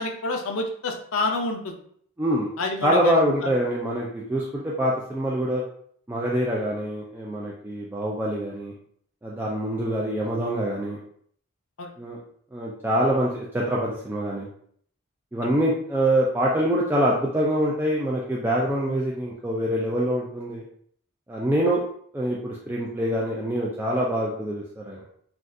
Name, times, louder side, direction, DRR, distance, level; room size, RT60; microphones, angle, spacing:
voice 1, 0.0-1.8 2.6-3.1 11.8-11.9 15.4-15.5, left 3 dB, 70° left, 3 dB, 0.5 m, -28 dB
voice 2, 2.2-2.5 2.8-5.6 6.1-8.7 9.2-11.0 12.0-12.2 12.5-14.5 15.3-20.6 21.3-21.8 22.1-25.0, equal, 10° right, -4 dB, 0.3 m, -25 dB
3.5 x 2.3 x 2.5 m, 0.62 s
head